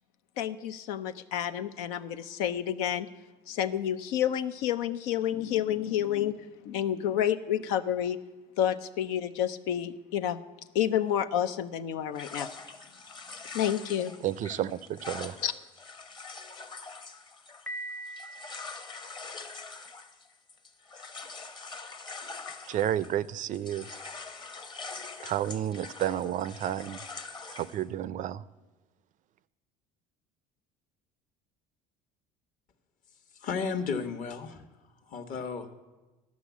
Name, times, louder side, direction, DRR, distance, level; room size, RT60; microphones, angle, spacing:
voice 1, 0.4-3.1 3.5-6.4 6.6-8.2 8.6-10.4 10.7-12.5 13.5-14.1 15.4-15.5, left 10 dB, 85° left, 10 dB, 0.6 m, -29 dB
sound 1, 12.2-23.3 23.5-27.8, left 4 dB, 25° left, 0.9 m, -44 dB
voice 2, 14.2-15.4 22.7-23.9 25.2-27.0 27.5-28.4, right 11 dB, 50° right, 18 dB, 0.4 m, -31 dB
Piano, 17.7-19.6, right 1 dB, 5° left, 0.6 m, -42 dB
voice 3, 33.3-34.6 35.1-35.7, left 5 dB, 50° left, 8 dB, 1.2 m, -33 dB
12.0 x 6.2 x 8.2 m, 1.2 s
supercardioid pair, 100°, 17 cm